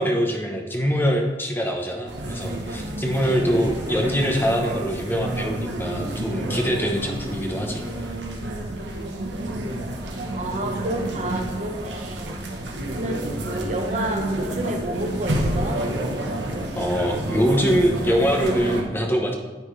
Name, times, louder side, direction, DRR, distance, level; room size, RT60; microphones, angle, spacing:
voice 1, 0.0-7.8 16.7-19.3, equal, 10° left, 1 dB, 0.9 m, -23 dB
sound 1, 2.1-18.8, right 1 dB, 85° right, 1.1 m, -29 dB
voice 2, 9.4-9.8 10.3-12.4 12.8-15.8 17.6-17.7, right 1 dB, 40° right, 3 dB, 1.0 m, -30 dB
10.0 x 5.6 x 3.2 m, 1.2 s
head